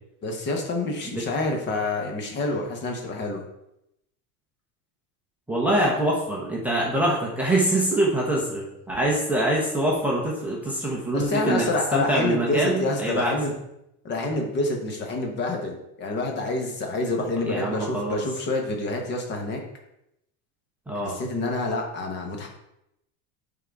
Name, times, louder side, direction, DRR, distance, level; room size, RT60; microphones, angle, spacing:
voice 1, 0.2-3.4 11.1-13.5 14.0-19.6 21.0-22.5, left 2 dB, 20° left, 2 dB, 1.0 m, -27 dB
voice 2, 5.5-11.6 11.9-13.3 17.4-18.2 20.9-21.1, right 1 dB, 5° right, -4 dB, 0.7 m, -24 dB
8.8 x 3.9 x 4.6 m, 0.83 s
supercardioid pair, 175°, 48 cm